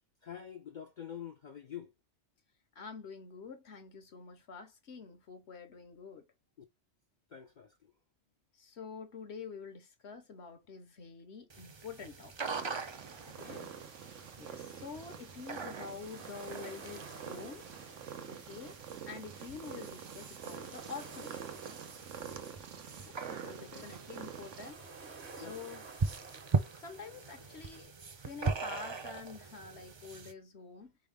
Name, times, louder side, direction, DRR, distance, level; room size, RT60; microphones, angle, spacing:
voice 1, 0.2-1.9 7.3-7.8 13.4-13.7 19.5-19.6 23.6-23.9 25.4-25.6, left 9 dB, 50° left, 0.6 m, -46 dB
voice 2, 2.7-6.3 8.5-12.5 13.3-13.6 14.4-17.6 18.3-18.8 19.1-21.4 22.9-24.8 25.4-25.9 26.8-31.0, left 5 dB, 65° left, 1.2 m, -47 dB
sound 1, 11.5-30.3, right 4 dB, 40° right, 0.4 m, -41 dB
Purr, 12.4-24.7, right 8 dB, 85° right, 1.1 m, -47 dB
sound 2, 13.4-27.8, right 4 dB, 65° right, 1.4 m, -54 dB
4.3 x 3.5 x 3.5 m
omnidirectional pair, 1.2 m